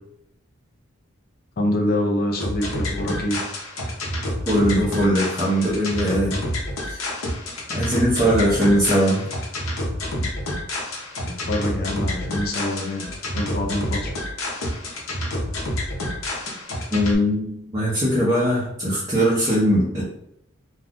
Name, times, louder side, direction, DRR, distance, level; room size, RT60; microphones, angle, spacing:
voice 1, 1.6-3.4 11.2-14.1, left 1 dB, 45° left, 1 dB, 0.5 m, -25 dB
sound 1, 2.4-17.1, left 1 dB, 85° left, 0.8 m, -28 dB
voice 2, 4.5-6.4 6.9-7.1 7.7-9.3 16.9-20.0, equal, 15° right, -8 dB, 0.7 m, -20 dB
2.5 x 2.3 x 3.5 m, 0.76 s
head